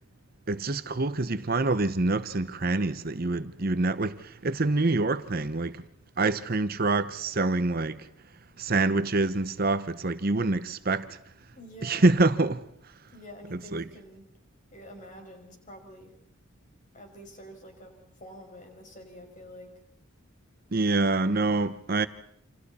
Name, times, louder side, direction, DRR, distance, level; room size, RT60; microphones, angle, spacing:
voice 1, 0.5-5.9 6.2-8.1 8.6-11.2 11.8-12.6 13.7-13.8 20.7-22.1, right 2 dB, 45° right, 0.9 m, -26 dB
voice 2, 11.5-12.2 13.1-14.3 14.7-16.1 16.9-19.7, equal, 35° left, 5.9 m, -47 dB
29.0 x 27.0 x 4.3 m
head